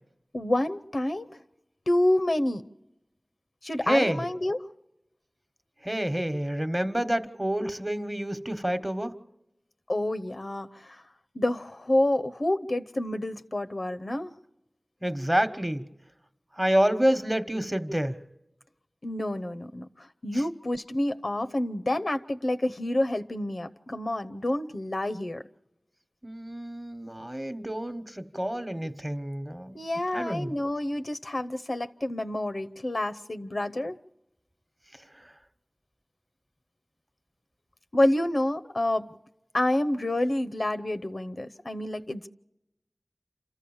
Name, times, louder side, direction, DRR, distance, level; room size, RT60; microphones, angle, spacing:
voice 1, 0.3-1.4 1.9-2.6 3.6-4.6 9.9-11.0 11.3-14.3 19.0-25.4 29.7-34.0 37.9-39.1 39.5-42.3, left 1 dB, 60° left, 0.8 m, -28 dB
voice 2, 3.9-4.2 5.8-9.1 15.0-15.8 16.6-18.2 26.2-29.8 30.1-30.5, equal, 20° right, 1.2 m, -28 dB
28.0 x 14.0 x 7.2 m
wide cardioid pair, 45°, 0 cm